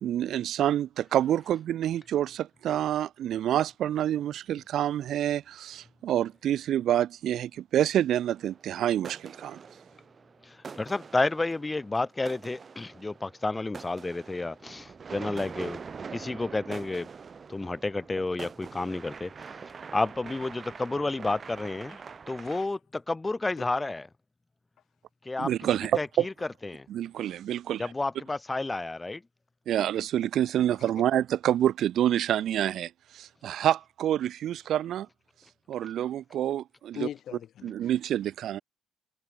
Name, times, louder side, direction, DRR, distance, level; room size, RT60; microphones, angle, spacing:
voice 1, 0.0-9.6 25.4-26.3 26.9-27.8 29.7-35.1 35.7-37.1 37.6-38.6, right 11 dB, 60° right, 0.7 m, -27 dB
sound 1, 8.2-8.7 9.0-22.6, right 5 dB, 30° right, 2.8 m, -44 dB
voice 2, 10.4-15.8 16.1-17.1 17.5-19.6 19.9-22.0 22.3-24.1 25.2-25.5 26.0-26.3 26.6-26.9 27.8-29.2, left 2 dB, 15° left, 1.1 m, -31 dB
voice 3, 22.4-22.8 31.0-31.1 37.0-37.9, left 10 dB, 60° left, 0.6 m, -40 dB
cardioid pair, 115°, 0 cm